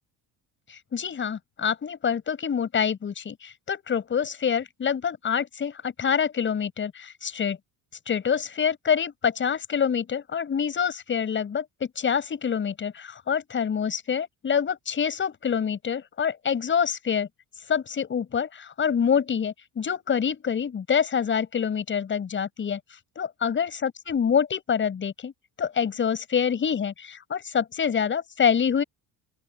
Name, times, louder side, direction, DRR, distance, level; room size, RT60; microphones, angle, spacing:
voice 1, 0.9-7.6 8.1-11.6 12.0-17.3 17.7-22.8 23.2-25.3 25.6-28.8, left 7 dB, 30° left, 6.7 m, -26 dB
open air
cardioid pair, 175°, 42 cm